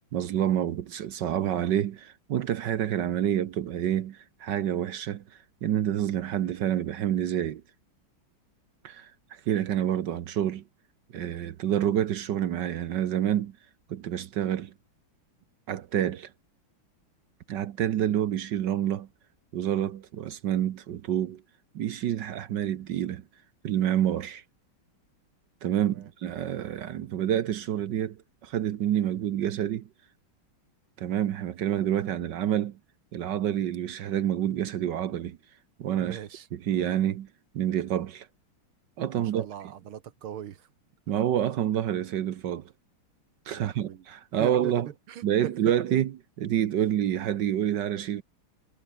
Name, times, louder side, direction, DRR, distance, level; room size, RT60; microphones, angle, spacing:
voice 1, 0.1-5.2 5.6-7.6 8.8-10.6 11.1-13.6 13.9-14.7 15.7-16.3 17.5-19.1 19.5-21.4 21.7-23.2 23.6-24.4 25.6-29.9 31.0-32.8 33.1-35.4 35.8-36.2 36.5-37.3 37.5-38.3 39.0-39.5 41.1-42.7 43.5-44.9 45.2-46.1 46.4-48.2, right 11 dB, 65° right, 1.4 m, -28 dB
voice 2, 36.0-36.5 39.1-40.7 43.5-44.1 44.4-45.5, right 10 dB, 80° right, 2.2 m, -41 dB
omnidirectional pair, 2.3 m